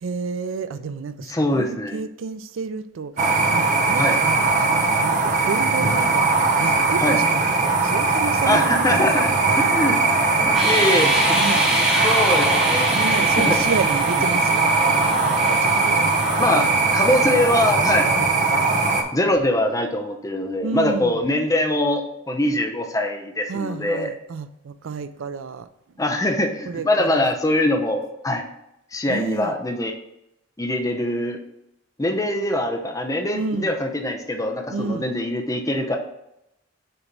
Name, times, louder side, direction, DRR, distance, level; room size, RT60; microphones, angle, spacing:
voice 1, 0.0-3.3 3.5-9.7 11.3-11.7 12.9-14.7 15.2-16.1 16.4-16.7 17.3-17.5 17.9-18.3 20.6-21.2 23.5-25.7 26.7-27.3 29.1-29.6 33.3-33.7 34.7-35.1, right 5 dB, 70° right, 12 dB, 0.4 m, -30 dB
voice 2, 1.3-2.0 4.0-4.2 7.0-7.2 8.5-9.3 9.6-10.0 10.4-11.4 11.8-13.0 13.4-13.6 16.4-16.7 16.9-18.1 19.1-24.1 26.0-28.5 28.9-29.9 30.6-31.4 32.0-36.0, left 1 dB, 15° left, 4 dB, 0.7 m, -23 dB
sound 1, 3.2-19.0, right 3 dB, 40° right, 0.8 m, -20 dB
sound 2, 10.5-17.3, equal, 5° right, 1.4 m, -27 dB
6.7 x 3.0 x 5.2 m, 0.83 s
head